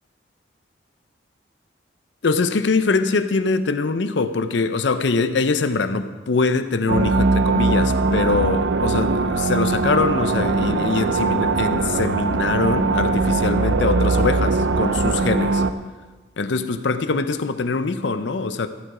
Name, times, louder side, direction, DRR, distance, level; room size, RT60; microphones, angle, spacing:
voice 1, 2.2-15.6 16.4-18.7, left 4 dB, 80° left, 10 dB, 0.6 m, -23 dB
sound 1, 6.9-15.7, right 3 dB, 90° right, 0.6 m, -21 dB
14.0 x 7.9 x 4.8 m, 1.3 s
head